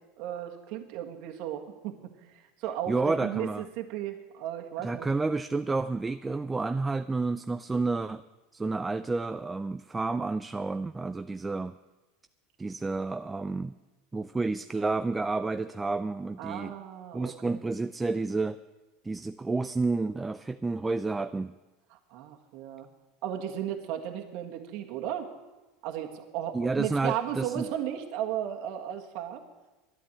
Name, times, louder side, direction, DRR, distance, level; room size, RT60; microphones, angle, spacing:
voice 1, 0.2-2.0 2.3-5.1 16.4-17.6 22.1-22.9 23.2-25.3 25.8-29.4, right 10 dB, 60° right, 3 dB, 1.6 m, -35 dB
voice 2, 2.9-3.6 4.8-8.2 8.5-11.7 12.6-13.7 14.1-16.7 17.1-18.6 19.0-21.5 26.5-27.6, right 3 dB, 10° right, 11 dB, 0.3 m, -30 dB
11.0 x 9.6 x 8.8 m, 1.1 s
supercardioid pair, 125°, 0 cm